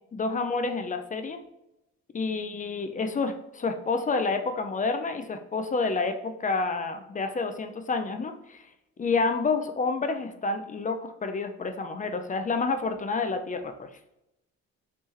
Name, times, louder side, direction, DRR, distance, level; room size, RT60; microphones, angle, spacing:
voice 1, 0.1-1.4 2.1-8.6 9.0-13.9, left 4 dB, 25° left, 7 dB, 0.4 m, -29 dB
3.3 x 3.2 x 2.9 m, 0.87 s
cardioid pair, 90°, 30 cm